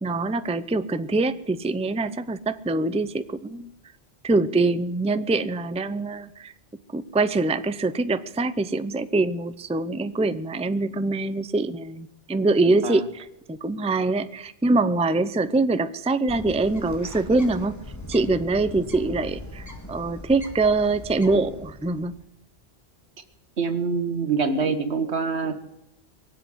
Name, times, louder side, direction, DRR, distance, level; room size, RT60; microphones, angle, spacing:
voice 1, 0.0-3.7 4.2-6.5 6.9-17.8 18.1-22.1, right 3 dB, 10° right, 12 dB, 0.5 m, -24 dB
Bird, 16.3-22.2, left 1 dB, 15° left, 2.2 m, -40 dB
voice 2, 23.6-25.6, right 4 dB, 80° right, 9 dB, 1.8 m, -25 dB
22.5 x 8.1 x 7.8 m, 0.89 s
omnidirectional pair, 1.1 m